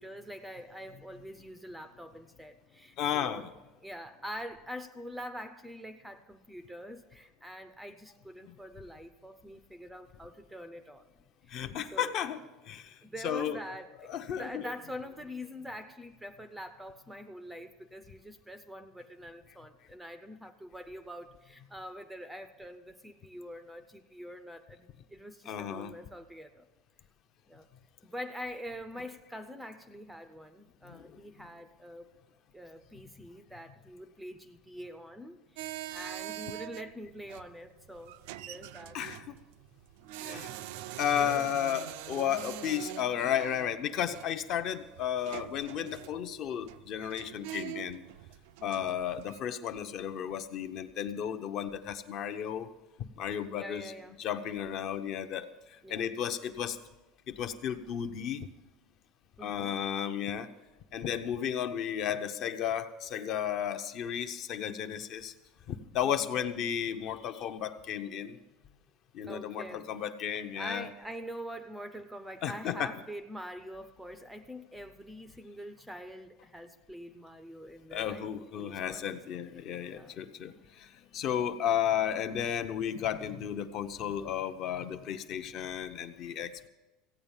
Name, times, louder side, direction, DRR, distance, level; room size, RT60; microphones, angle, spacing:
voice 1, 0.0-3.5 3.8-11.1 11.4-12.1 13.0-26.7 27.5-27.7 28.0-32.1 32.5-39.0 40.2-40.6 41.2-41.5 48.6-49.0 53.5-54.2 55.8-56.1 59.4-59.8 66.0-66.3 69.2-69.9 70.5-78.3 78.5-79.0 79.9-80.2, equal, 5° right, 10 dB, 0.5 m, -45 dB
voice 2, 3.0-3.5 8.5-8.6 11.5-12.4 12.7-13.0 13.2-13.6 14.1-14.6 25.5-25.9 30.8-31.2 38.9-39.4 40.2-40.5 41.0-48.0 48.6-52.7 53.2-53.9 54.2-55.5 55.9-56.8 57.3-58.5 59.4-60.5 60.9-65.3 65.7-68.4 69.1-70.9 72.4-72.9 77.9-86.7, left 9 dB, 35° left, 9 dB, 0.7 m, -33 dB
sound 1, 35.6-49.4, right 14 dB, 65° right, 0.5 m, -44 dB
15.5 x 8.8 x 7.2 m, 1.1 s
cardioid pair, 170°, 0 cm